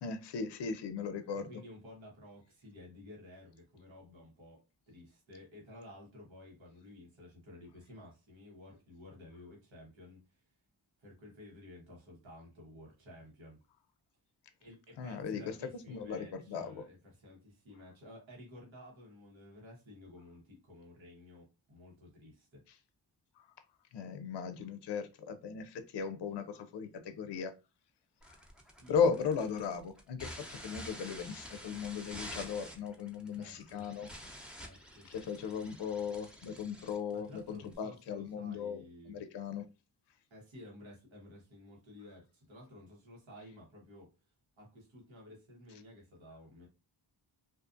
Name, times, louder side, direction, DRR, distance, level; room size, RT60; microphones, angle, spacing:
voice 1, 0.0-1.5 15.0-15.6 15.9-16.8 23.4-23.5 23.9-27.5 28.3-28.4 28.9-34.1 35.0-39.7, left 6 dB, 65° left, 0.5 m, -37 dB
voice 2, 1.3-10.4 11.0-13.6 14.6-22.6 28.5-29.1 33.3-33.9 34.6-35.7 37.1-39.2 40.3-44.1 44.6-46.7, left 1 dB, 85° right, 1.2 m, -53 dB
sound 1, 28.2-37.8, equal, ahead, 0.8 m, -49 dB
2.5 x 2.4 x 2.5 m
cardioid pair, 45°, 46 cm